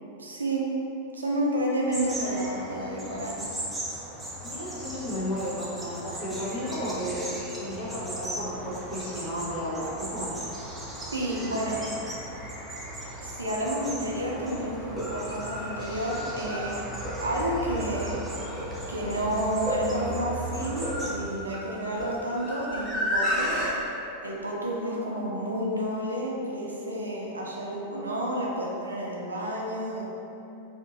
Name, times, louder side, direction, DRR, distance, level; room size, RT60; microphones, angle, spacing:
voice 1, 0.2-0.7 1.1-3.4 11.1-11.8 13.2-16.8 17.2-18.2 18.9-23.6 24.2-30.1, right 1 dB, 75° right, -3 dB, 0.4 m, -30 dB
sound 1, 1.9-21.2, right 1 dB, 10° right, 0.5 m, -38 dB
voice 2, 4.4-7.3 7.6-10.3 24.8-25.3 25.8-25.9, equal, 40° left, -9 dB, 0.7 m, -33 dB
sound 2, 14.8-23.7, equal, 10° left, 1.1 m, -33 dB
2.8 x 2.6 x 2.4 m, 2.9 s
figure-of-eight pair, 90°, 0 cm